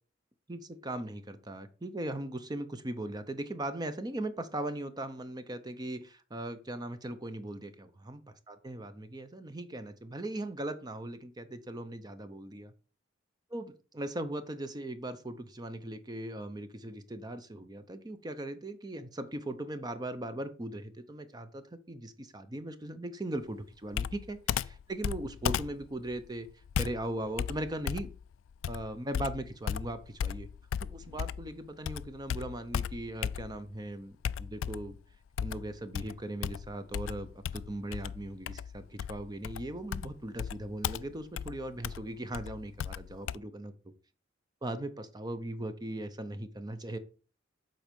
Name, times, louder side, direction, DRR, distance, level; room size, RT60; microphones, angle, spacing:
voice 1, 0.5-8.2 8.5-12.7 13.5-26.5 26.8-28.1 28.7-30.5 30.8-35.0 35.4-43.7 44.6-47.0, right 1 dB, 20° right, 10 dB, 0.6 m, -39 dB
Computer keyboard, 23.9-31.5 31.8-33.7 34.2-35.0 35.4-43.4, left 8 dB, 85° left, 0.3 m, -36 dB
7.7 x 4.5 x 5.2 m, 0.37 s
head